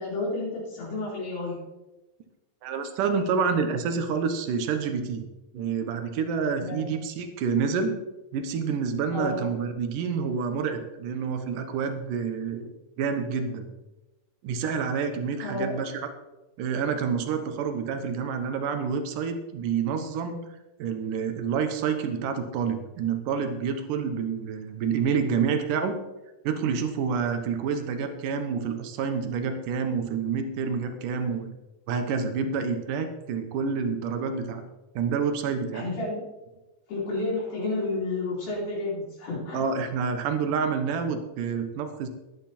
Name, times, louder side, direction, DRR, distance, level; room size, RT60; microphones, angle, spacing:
voice 1, 0.0-1.6 6.6-6.8 9.1-9.4 15.4-15.7 35.7-36.2 36.9-39.7, left 2 dB, 85° left, -7 dB, 5.4 m, -31 dB
voice 2, 2.6-5.3 5.5-7.9 8.3-12.7 13.0-13.7 14.4-15.9 16.6-20.4 20.8-26.0 26.4-31.5 31.9-34.6 35.0-35.9 39.5-42.1, right 6 dB, 70° right, 8 dB, 2.6 m, -28 dB
11.5 x 11.5 x 4.4 m, 1.0 s
omnidirectional pair, 4.1 m